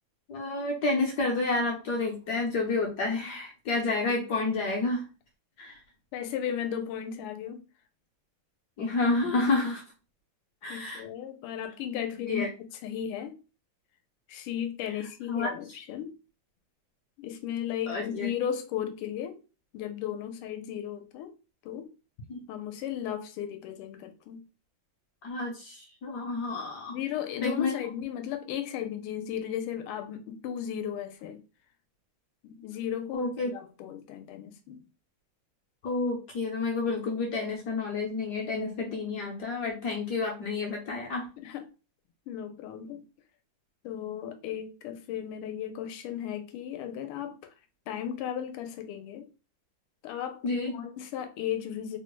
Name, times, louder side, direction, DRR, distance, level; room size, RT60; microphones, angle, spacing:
voice 1, 0.3-5.0 5.6-5.8 8.8-9.8 10.6-11.0 12.3-12.5 15.3-15.5 17.9-18.3 22.3-22.4 25.2-27.0 27.4-27.7 33.1-33.5 35.8-41.3 50.4-50.7, left 3 dB, 70° left, 1.0 m, -29 dB
voice 2, 6.1-7.6 10.7-13.4 14.3-16.1 17.2-19.4 19.7-21.3 21.6-21.9 22.5-24.4 26.9-31.4 32.4-34.8 41.4-41.6 42.3-43.0 43.8-47.5 47.9-49.3 50.0-50.4 50.7-52.0, left 9 dB, 85° left, 1.5 m, -35 dB
3.6 x 2.1 x 3.0 m
omnidirectional pair, 2.4 m